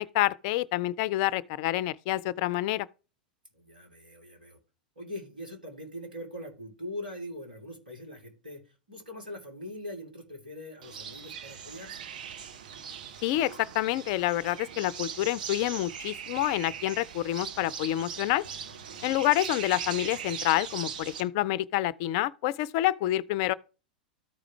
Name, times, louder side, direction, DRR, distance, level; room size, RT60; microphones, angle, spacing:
voice 1, 0.0-2.9 13.2-18.4 19.0-23.5, left 15 dB, 45° left, 0.4 m, -28 dB
voice 2, 3.5-4.6 4.9-12.1 18.6-19.2, left 1 dB, 80° right, 2.9 m, -42 dB
sound 1, 10.8-21.2, right 7 dB, 65° right, 1.1 m, -40 dB
13.5 x 4.9 x 3.2 m
figure-of-eight pair, 90°, 5 cm